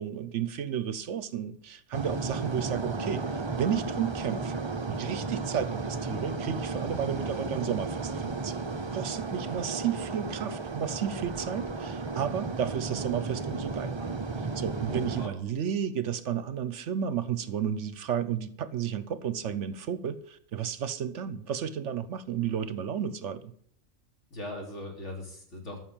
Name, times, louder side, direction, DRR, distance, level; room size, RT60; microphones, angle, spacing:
voice 1, 0.0-3.2 3.6-4.6 4.9-8.6 8.9-14.1 14.6-23.5, right 8 dB, 65° right, 1.0 m, -32 dB
sound 1, 1.9-15.3, right 3 dB, 30° right, 0.6 m, -34 dB
voice 2, 14.9-15.3 24.3-25.8, left 1 dB, 60° left, 3.7 m, -39 dB
13.5 x 6.4 x 8.7 m
omnidirectional pair, 1.4 m